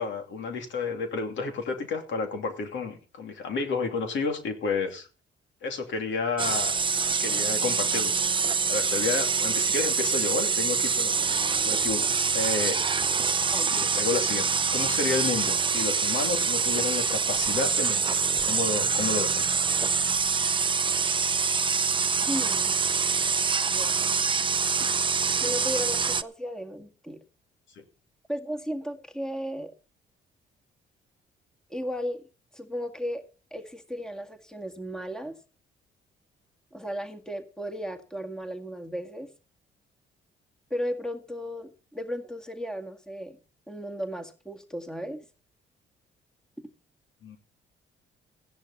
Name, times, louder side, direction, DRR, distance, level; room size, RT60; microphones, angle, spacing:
voice 1, 0.0-5.1 5.6-6.7 7.2-8.1 8.7-11.1 11.6-12.8 13.7-14.4 14.7-19.5 24.6-24.7 47.2-47.4, left 4 dB, 70° left, 5 dB, 2.7 m, -31 dB
sound 1, 6.4-26.2, right 5 dB, 25° right, 0.6 m, -25 dB
voice 2, 22.3-22.8 23.7-24.1 25.4-27.2 28.3-29.7 31.7-32.2 32.5-33.2 33.5-35.4 36.7-39.3 40.7-43.4 43.7-45.2, equal, 5° left, 6 dB, 1.9 m, -35 dB
15.0 x 10.5 x 4.2 m, 0.35 s
cardioid pair, 90°, 20 cm